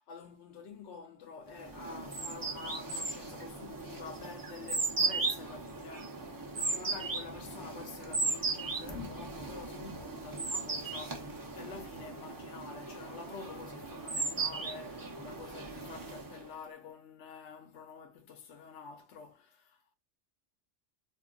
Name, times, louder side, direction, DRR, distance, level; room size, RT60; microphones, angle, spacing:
voice 1, 0.1-19.9, left 5 dB, 75° left, 0.9 m, -48 dB
sound 1, 1.6-16.5, right 3 dB, 30° right, 0.4 m, -37 dB
2.6 x 2.3 x 3.7 m
omnidirectional pair, 1.2 m